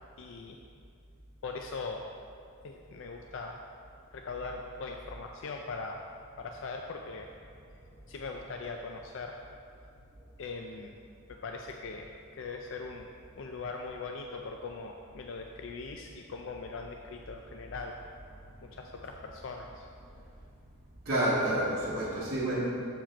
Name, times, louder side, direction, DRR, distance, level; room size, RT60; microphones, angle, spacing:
voice 1, 0.2-0.6 1.4-2.0 2.6-3.6 4.1-6.0 6.4-7.3 8.1-9.4 10.4-11.0 11.3-13.1 13.3-18.0 18.6-19.9, left 4 dB, 60° left, 2 dB, 0.4 m, -40 dB
voice 2, 21.0-22.6, right 1 dB, 50° right, -8 dB, 1.0 m, -29 dB
7.4 x 4.7 x 4.4 m, 2.3 s
head